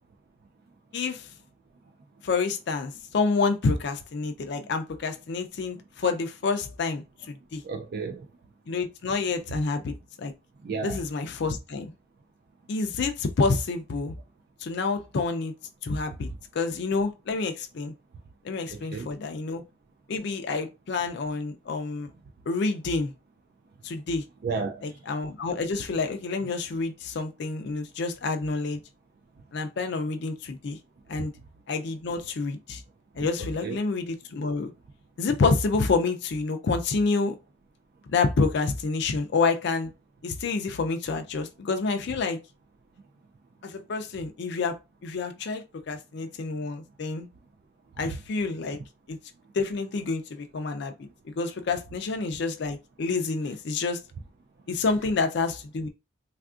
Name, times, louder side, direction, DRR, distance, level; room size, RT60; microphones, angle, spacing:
voice 1, 0.9-1.3 2.2-7.6 8.7-10.3 10.8-11.9 12.7-14.2 14.6-15.5 15.8-17.9 18.4-19.6 20.1-22.1 22.5-23.1 23.8-24.2 24.8-28.8 29.5-30.8 31.1-31.3 31.7-32.8 33.2-34.7 35.2-37.4 38.1-39.9 40.2-42.4 43.6-44.8 45.0-47.3 48.0-48.8 49.1-49.2 49.5-50.9 51.4-54.0 54.7-55.9, left 4 dB, 55° left, 0.4 m, -28 dB
voice 2, 7.6-8.3 10.6-11.0 18.7-19.1 24.4-25.0 33.4-33.8, right 4 dB, 50° right, 0.3 m, -33 dB
3.4 x 2.4 x 2.3 m
head